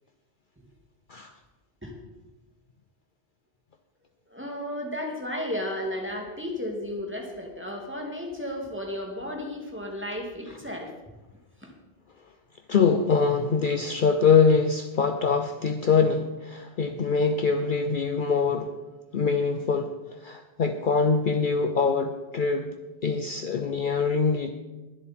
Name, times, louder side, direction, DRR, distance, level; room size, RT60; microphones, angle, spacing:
voice 1, 4.3-10.9 11.6-11.7, left 1 dB, 10° right, 0 dB, 2.3 m, -33 dB
voice 2, 12.7-18.7 19.1-22.7 23.0-24.5, left 5 dB, 50° left, 6 dB, 0.8 m, -24 dB
21.0 x 7.9 x 4.4 m, 1.1 s
omnidirectional pair, 1.1 m